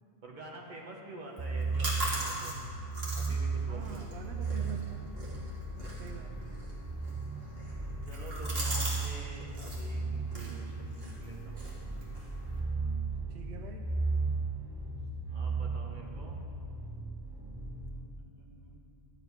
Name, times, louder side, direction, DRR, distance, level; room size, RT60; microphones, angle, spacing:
voice 1, 0.2-2.7 3.1-3.8 4.1-4.5 5.7-6.2 8.0-11.7 12.6-12.9 15.3-16.3 17.6-18.8, right 2 dB, 50° right, -2 dB, 1.4 m, -48 dB
sound 1, 1.4-17.9, right 4 dB, 25° right, 0.7 m, -36 dB
sound 2, 1.4-9.1 9.4-9.8 10.3-12.6, right 1 dB, 70° right, 1.9 m, -41 dB
voice 2, 3.7-5.1 5.9-6.5 13.2-13.9, right 3 dB, 85° right, 4 dB, 0.9 m, -46 dB
11.5 x 7.8 x 4.7 m, 2.5 s
omnidirectional pair, 1.1 m